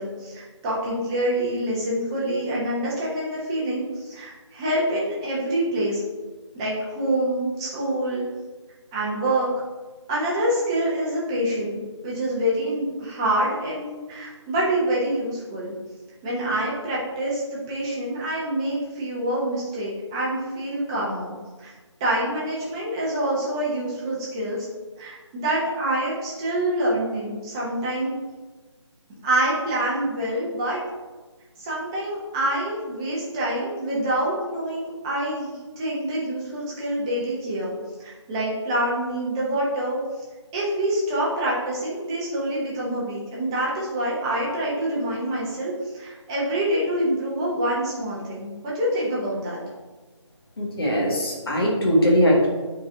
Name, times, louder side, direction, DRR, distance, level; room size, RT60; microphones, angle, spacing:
voice 1, 0.0-6.0 6.5-8.2 8.9-9.5 10.1-11.8 12.0-15.7 16.2-21.3 21.6-21.7 22.0-24.7 25.0-28.1 29.2-30.8 31.6-37.7 38.0-40.0 40.5-49.6, right 1 dB, 10° right, -6 dB, 0.8 m, -26 dB
voice 2, 50.6-52.5, equal, 50° left, -2 dB, 1.8 m, -20 dB
8.4 x 4.1 x 2.8 m, 1.3 s
figure-of-eight pair, 165°, 16 cm